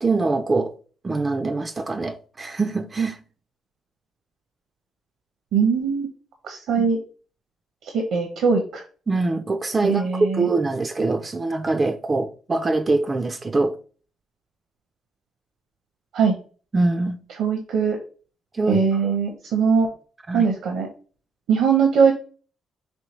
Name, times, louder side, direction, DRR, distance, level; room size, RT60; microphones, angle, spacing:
voice 1, 0.0-0.7 1.0-3.2 6.8-6.9 9.1-13.8 16.7-17.2 18.5-19.1 20.3-20.5, right 3 dB, 30° right, 0.3 m, -23 dB
voice 2, 5.5-6.1 6.4-7.0 7.8-8.8 9.8-10.5 16.1-16.4 17.4-18.0 18.7-19.9 20.3-20.9 21.5-22.1, right 6 dB, 80° right, 0.7 m, -21 dB
4.4 x 3.1 x 3.1 m
cardioid pair, 90°, 0 cm